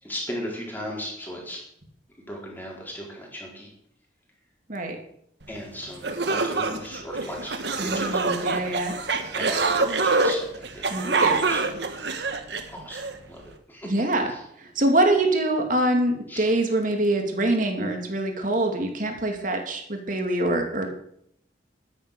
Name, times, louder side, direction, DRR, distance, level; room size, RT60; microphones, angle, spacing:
voice 1, 0.0-1.6 2.3-3.7 5.5-8.5 9.4-11.6 12.7-13.4 13.7-13.9 14.3-14.4 16.3-16.5, equal, 10° left, -2 dB, 4.3 m, -37 dB
sound 1, 5.6-5.7 6.0-13.1, right 3 dB, 65° right, 1.5 m, -25 dB
voice 2, 7.8-8.9 10.9-11.4 13.9-14.3 14.6-20.9, right 1 dB, 45° right, 4 dB, 2.4 m, -24 dB
12.5 x 9.9 x 6.7 m, 0.72 s
head